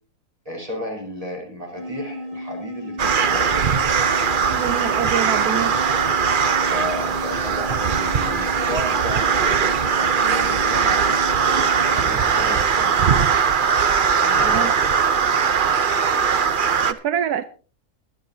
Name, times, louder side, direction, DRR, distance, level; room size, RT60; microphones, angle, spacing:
voice 1, 0.4-3.7 6.6-11.3 11.8-13.0 14.2-14.8, equal, 20° right, 1 dB, 4.7 m, -33 dB
sound 1, 1.7-12.1, left 1 dB, 30° left, 7.6 m, -34 dB
sound 2, 3.0-16.9, right 6 dB, 45° right, 0.7 m, -20 dB
voice 2, 4.5-5.7 14.5-14.7 16.9-17.5, right 9 dB, 80° right, 12 dB, 1.3 m, -25 dB
22.5 x 10.0 x 2.7 m, 0.37 s
omnidirectional pair, 1.6 m